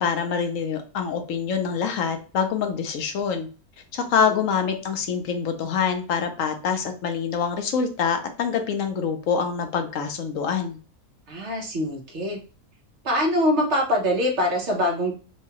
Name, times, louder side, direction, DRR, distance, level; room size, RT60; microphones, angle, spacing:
voice 1, 0.0-3.5 3.9-10.8, left 6 dB, 70° left, 6 dB, 0.9 m, -25 dB
voice 2, 11.3-12.4 13.0-15.1, left 1 dB, 55° right, 0 dB, 1.1 m, -23 dB
4.6 x 2.2 x 2.8 m, 0.35 s
omnidirectional pair, 1.5 m